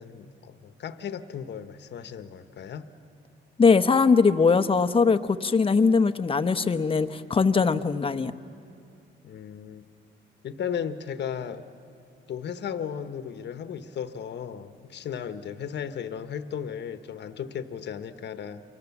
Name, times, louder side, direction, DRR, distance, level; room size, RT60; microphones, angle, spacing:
voice 1, 0.0-2.9 9.2-9.8 10.4-11.6 12.3-18.6, left 8 dB, 60° left, 10 dB, 1.1 m, -35 dB
voice 2, 3.6-8.3, left 4 dB, 25° left, 10 dB, 0.9 m, -21 dB
29.0 x 23.5 x 7.2 m, 2.5 s
cardioid pair, 90°, 20 cm